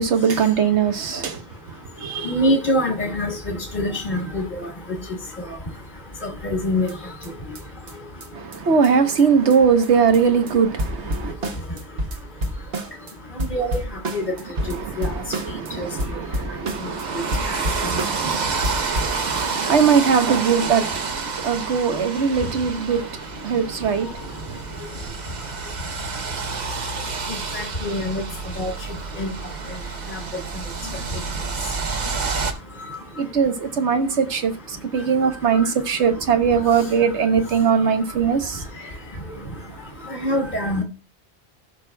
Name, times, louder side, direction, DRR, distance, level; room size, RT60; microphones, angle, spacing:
voice 1, 0.0-1.4 2.0-2.3 8.3-11.3 14.6-23.1 23.4-24.2 33.2-34.5 34.9-38.6, right 6 dB, 85° right, 1.3 m, -21 dB
voice 2, 2.2-4.7 6.2-6.9 13.5-13.8 14.1-14.2 15.0-15.1 15.8-15.9 27.5-28.2 28.6-28.7 29.2-29.3 40.2-40.8, left 1 dB, 45° left, 1.6 m, -24 dB
sound 1, 6.9-7.0 7.2-7.3 7.6-7.7 7.9-8.0 8.2-8.3 8.5-8.6 8.8-8.9 9.2-9.3 9.5-9.6 9.8-10.2 10.5-10.6 10.8-13.1 13.4-15.7 16.0-17.0 17.3-18.4 18.6-19.2, equal, 60° right, 1.3 m, -29 dB
sound 2, 16.7-32.5, right 4 dB, 45° right, 0.8 m, -29 dB
16.0 x 6.1 x 2.2 m
omnidirectional pair, 1.1 m